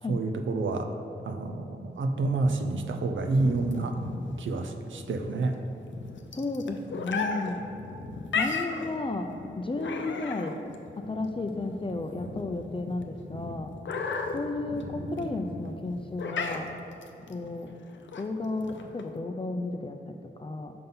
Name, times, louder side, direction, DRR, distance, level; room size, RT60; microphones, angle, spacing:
voice 1, 0.1-0.9 1.2-4.0 4.4-5.6, right 3 dB, 85° right, 5 dB, 0.5 m, -28 dB
sound 1, 3.2-19.2, left 4 dB, 75° left, 0.5 m, -36 dB
voice 2, 6.3-7.6 8.4-9.3 9.6-10.6 11.0-13.7 14.3-16.7 17.3-17.7 18.2-20.7, left 2 dB, 25° left, 5 dB, 0.4 m, -33 dB
5.5 x 3.9 x 5.5 m, 2.9 s
cardioid pair, 50°, 19 cm